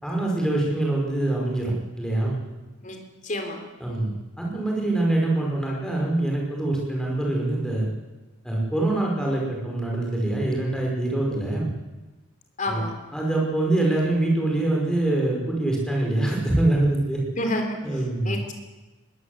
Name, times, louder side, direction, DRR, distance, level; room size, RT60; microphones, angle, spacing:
voice 1, 0.0-2.4 3.8-7.9 8.4-11.7 12.7-12.8 13.1-17.2 17.8-18.4, right 2 dB, 5° left, -2 dB, 5.5 m, -24 dB
voice 2, 3.2-3.6 12.6-12.9 17.4-17.8 18.3-18.5, left 1 dB, 35° left, 4 dB, 3.6 m, -28 dB
21.0 x 17.5 x 8.2 m, 1.2 s
head